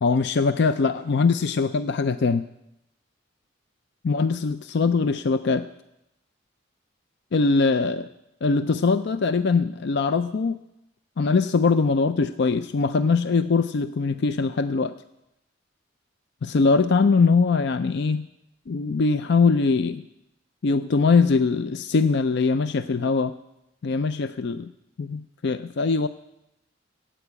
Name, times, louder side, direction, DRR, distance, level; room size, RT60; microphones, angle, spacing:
voice 1, 0.0-2.4 4.0-5.6 7.3-8.1 8.4-10.6 11.2-14.9 16.4-18.3 18.7-20.0 20.6-23.3 23.8-24.7 25.0-26.1, left 4 dB, 60° left, 12 dB, 0.5 m, -22 dB
14.5 x 8.9 x 8.2 m, 0.85 s
head